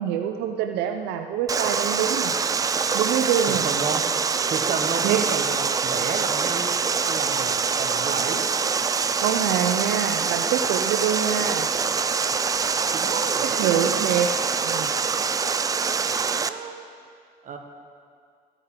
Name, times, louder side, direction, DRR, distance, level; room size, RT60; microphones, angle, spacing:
voice 1, 0.0-2.3 2.9-3.7 5.0-5.2 9.2-11.7 13.4-14.3 14.6-14.9, right 9 dB, 90° right, 5 dB, 0.5 m, -25 dB
Water, 1.5-16.5, right 5 dB, 20° right, 0.3 m, -24 dB
voice 2, 3.5-4.1 4.5-8.5 12.9-14.0 16.3-16.8 17.4-17.6, right 5 dB, 50° right, 4 dB, 1.2 m, -32 dB
14.5 x 9.0 x 3.7 m, 2.2 s
cardioid pair, 110°, 17 cm